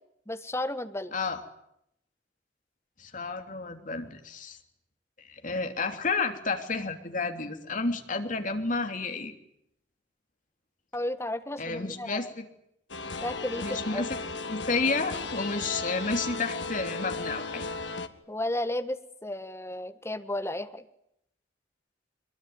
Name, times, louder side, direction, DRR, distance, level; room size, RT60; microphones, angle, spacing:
voice 1, 0.3-1.1 10.9-12.3 13.2-14.0 18.3-20.8, left 1 dB, 15° left, 10 dB, 1.6 m, -33 dB
voice 2, 3.0-4.6 5.2-9.3 11.6-12.4 13.6-14.2 14.5-17.7, left 3 dB, 45° left, 5 dB, 3.3 m, -31 dB
sound 1, 12.9-18.1, left 3 dB, 85° left, 1.7 m, -35 dB
24.0 x 22.5 x 9.6 m, 0.76 s
head